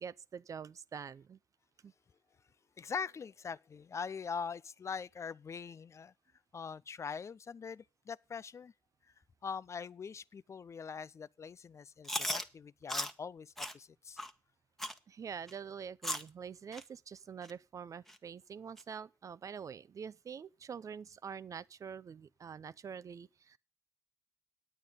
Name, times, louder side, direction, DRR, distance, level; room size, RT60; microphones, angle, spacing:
voice 1, 0.0-1.4 1.8-1.9 15.1-23.6, right 7 dB, 45° right, 0.6 m, -46 dB
voice 2, 2.8-6.1 6.5-8.7 9.4-14.2, left 6 dB, 40° left, 0.5 m, -42 dB
Chewing mastication, 12.0-12.4 12.9-13.1 13.6-13.7 14.2-14.3 14.8-15.0 15.5-15.6 16.0-16.3 16.7-16.8 17.4-17.5 18.1-18.2 18.8-18.9, equal, 5° left, 1.4 m, -36 dB
9.3 x 8.8 x 5.3 m
hypercardioid pair, 50°, 8 cm